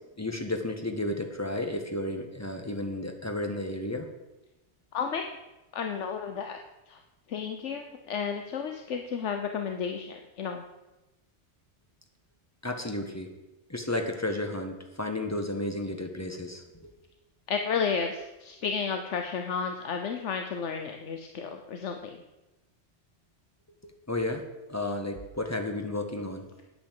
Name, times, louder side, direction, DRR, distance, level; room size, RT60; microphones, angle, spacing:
voice 1, 0.2-4.1 12.6-13.3 13.7-16.9 23.8-24.4 24.7-26.5, left 1 dB, 15° left, 4 dB, 1.5 m, -32 dB
voice 2, 4.9-5.3 5.7-6.6 6.9-7.0 7.3-10.6 17.5-22.2, left 6 dB, 80° left, 5 dB, 1.2 m, -32 dB
10.0 x 8.6 x 7.6 m, 1.0 s
omnidirectional pair, 1.2 m